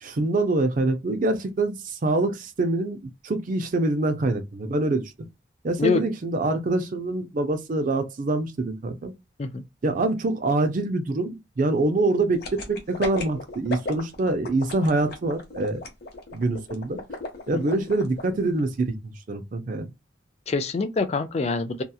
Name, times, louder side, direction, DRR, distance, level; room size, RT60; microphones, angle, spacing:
voice 1, 0.0-5.1 5.6-9.1 9.8-15.8 16.3-17.0 17.5-19.0 19.3-19.9, right 2 dB, 45° right, 0.4 m, -25 dB
sound 1, 12.4-18.2 18.6-18.7, left 2 dB, 55° left, 0.8 m, -34 dB
voice 2, 20.5-21.8, left 4 dB, 35° left, 0.3 m, -25 dB
2.8 x 2.3 x 2.3 m
head